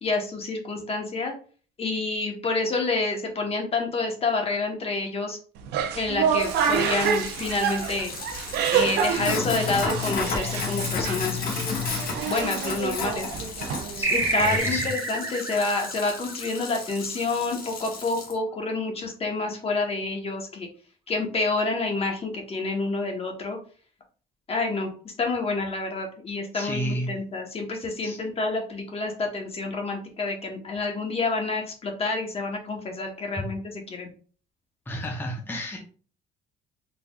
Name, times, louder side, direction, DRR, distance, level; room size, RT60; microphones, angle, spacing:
voice 1, 0.0-1.3 1.8-5.4 5.9-8.1 8.7-11.4 12.2-13.3 13.6-13.7 14.1-20.7 21.1-23.6 24.5-33.6 33.9-34.1, left 3 dB, 35° left, 3 dB, 1.0 m, -28 dB
sound 1, 5.6-14.6, right 7 dB, 80° right, 0.6 m, -28 dB
Sink (filling or washing), 6.4-18.3, left 5 dB, 60° left, 1.1 m, -33 dB
voice 2, 14.0-14.9 26.5-27.1 28.0-28.2 34.9-35.8, equal, 10° left, 0 dB, 0.8 m, -32 dB
sound 2, 14.0-17.0, right 3 dB, 15° right, 0.8 m, -28 dB
4.1 x 3.3 x 2.3 m, 0.41 s
cardioid pair, 110°, 17 cm